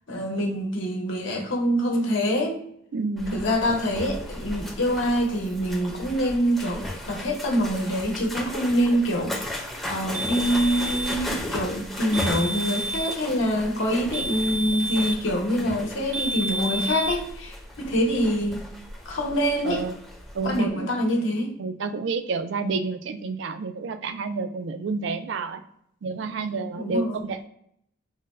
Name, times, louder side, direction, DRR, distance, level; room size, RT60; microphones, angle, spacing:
voice 1, 0.1-2.6 3.3-9.6 9.9-18.7 19.0-19.8 20.4-21.5 26.8-27.2, equal, 75° left, 1 dB, 0.9 m, -25 dB
voice 2, 2.9-3.4 19.6-19.9 20.3-20.9 21.6-25.6 26.0-27.5, right 4 dB, 65° right, 9 dB, 0.4 m, -29 dB
sound 1, 3.2-20.6, left 1 dB, ahead, 0.6 m, -36 dB
sound 2, 10.1-11.3 12.1-13.3 14.1-15.3 16.1-17.2, right 1 dB, 85° right, 0.8 m, -30 dB
3.5 x 2.2 x 3.1 m, 0.70 s
head